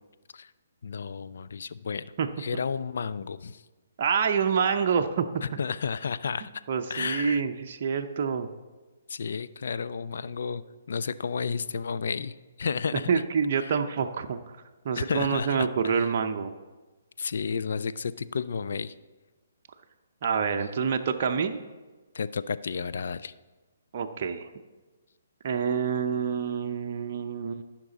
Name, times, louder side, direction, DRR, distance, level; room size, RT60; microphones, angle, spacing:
voice 1, 0.8-2.0 2.4-3.6 5.6-6.6 6.9-7.4 9.1-10.6 10.9-13.2 13.6-13.7 15.0-15.7 15.9-16.1 17.2-18.9 22.1-23.3, left 5 dB, 65° left, 15 dB, 0.4 m, -32 dB
voice 2, 4.0-5.3 6.7-8.5 12.9-14.4 14.8-16.5 20.2-21.6 23.9-24.5 25.4-27.6, right 6 dB, 45° right, 4 dB, 0.6 m, -27 dB
14.5 x 5.9 x 4.0 m, 1.2 s
figure-of-eight pair, 135°, 0 cm